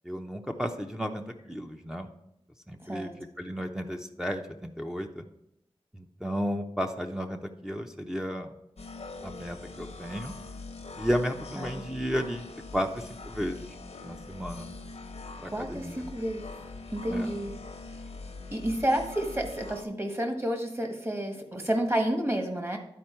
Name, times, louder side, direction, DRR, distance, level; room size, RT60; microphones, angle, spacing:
voice 1, 0.0-2.1 2.7-3.1 3.4-5.2 5.9-8.5 9.2-10.3 11.0-12.5 12.7-13.7 14.0-14.7 15.4-16.0 17.1-17.3, equal, 5° right, 2 dB, 0.7 m, -33 dB
voice 2, 2.8-3.1 11.6-11.8 15.5-16.4 16.9-17.5 18.5-22.8, right 1 dB, 20° right, 3 dB, 1.4 m, -30 dB
sound 1, 8.8-19.8, left 3 dB, 80° left, 0.9 m, -43 dB
11.0 x 4.5 x 4.5 m, 0.83 s
wide cardioid pair, 65°, 11 cm